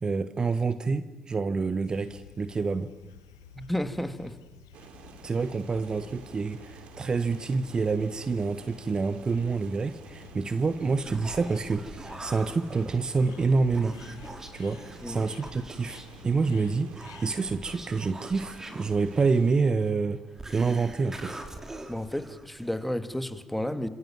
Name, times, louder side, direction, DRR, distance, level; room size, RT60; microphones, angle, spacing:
voice 1, 0.0-2.9 5.2-14.0 14.5-20.2 20.5-21.4, right 4 dB, 35° right, 13 dB, 1.4 m, -27 dB
sound 1, 1.8-17.8, left 7 dB, 80° left, 1.2 m, -52 dB
voice 2, 3.6-4.4 15.0-15.2 21.9-23.9, left 1 dB, 5° left, 10 dB, 2.4 m, -32 dB
sound 2, 4.7-19.5, right 5 dB, 60° right, 3.0 m, -51 dB
Human voice, 10.7-23.0, right 1 dB, 20° right, 4.7 m, -44 dB
29.0 x 26.5 x 7.5 m, 1.1 s
figure-of-eight pair, 45°, 2 cm